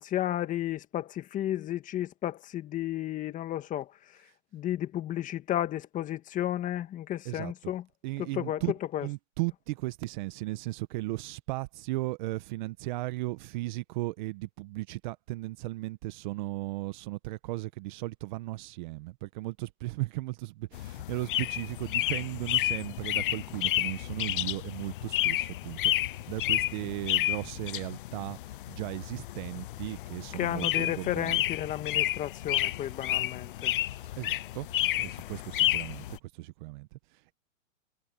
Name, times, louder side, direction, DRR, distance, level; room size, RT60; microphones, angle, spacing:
voice 1, 0.0-4.2 4.5-7.8 8.2-8.6 8.9-9.1 30.3-33.7, left 12 dB, 20° left, 1.9 m, -33 dB
voice 2, 7.2-7.7 8.0-8.7 9.0-28.4 28.7-31.4 34.2-34.7 35.0-37.3, right 20 dB, 35° right, 1.2 m, -36 dB
sound 1, 20.7-36.2, left 14 dB, 40° left, 0.5 m, -31 dB
hypercardioid pair, 145°, 40 cm